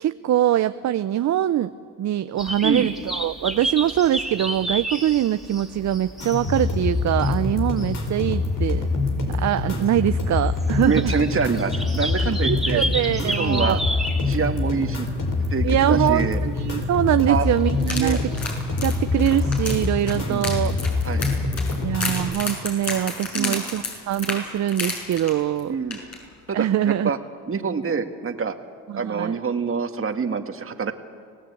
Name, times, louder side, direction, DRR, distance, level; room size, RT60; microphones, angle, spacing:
voice 1, 0.0-1.7 2.0-8.9 9.3-11.1 12.5-13.7 15.6-18.3 18.8-20.7 21.8-25.8 26.5-27.1 28.9-29.4, right 12 dB, 55° right, 12 dB, 0.7 m, -23 dB
sound 1, 2.4-19.8, right 1 dB, ahead, 3.1 m, -34 dB
sound 2, 6.2-22.2, left 3 dB, 65° left, 4.8 m, -25 dB
voice 2, 10.9-12.8 13.2-13.8 14.2-15.1 15.5-16.4 17.3-17.5 18.0-18.2 20.2-20.5 21.0-21.3 23.3-23.6 25.7-26.0 26.5-26.7 27.0-27.2 27.5-28.5 28.9-30.9, right 5 dB, 40° right, 6 dB, 2.0 m, -25 dB
sound 3, 17.8-25.6 25.9-26.2 26.5-26.6, left 3 dB, 45° left, 6.9 m, -31 dB
25.5 x 17.5 x 8.5 m, 2.1 s
cardioid pair, 80°, 35 cm